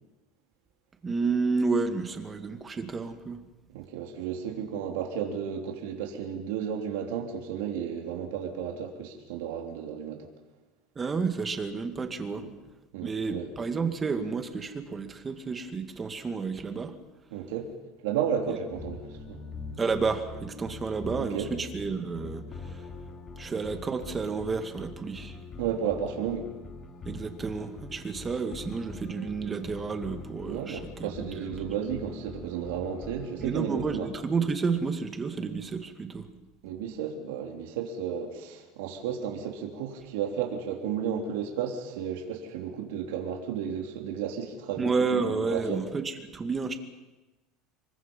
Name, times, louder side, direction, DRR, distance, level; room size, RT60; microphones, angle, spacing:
voice 1, 1.0-3.4 11.0-12.5 13.0-17.0 18.5-18.6 19.8-22.9 23.4-25.4 27.1-31.6 33.4-36.4 44.8-46.8, right 4 dB, 20° right, 7 dB, 2.1 m, -31 dB
voice 2, 3.7-10.3 12.4-12.5 12.9-13.5 17.3-17.7 18.0-19.0 19.3-19.4 21.2-21.5 25.6-26.5 30.4-34.1 36.6-45.8, right 8 dB, 90° right, 2 dB, 3.5 m, -33 dB
sound 1, 18.7-34.1, left 3 dB, 30° left, 2.6 m, -43 dB
27.5 x 23.0 x 5.6 m, 1.1 s
supercardioid pair, 140°, 0 cm